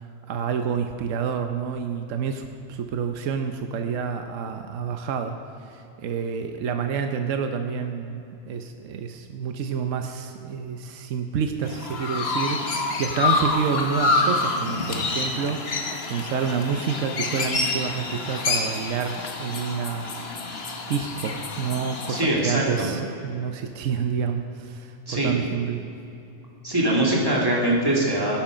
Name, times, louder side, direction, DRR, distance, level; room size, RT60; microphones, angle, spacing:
voice 1, 0.0-5.3 5.6-20.2 20.6-25.8, right 6 dB, 75° right, 6 dB, 1.2 m, -29 dB
Chirp tweet, 11.6-22.2, left 3 dB, 55° left, 1.5 m, -27 dB
voice 2, 22.1-22.9 25.1-25.5 26.6-28.4, right 1 dB, 15° right, -3 dB, 2.6 m, -22 dB
17.5 x 10.5 x 5.1 m, 2.8 s
omnidirectional pair, 1.3 m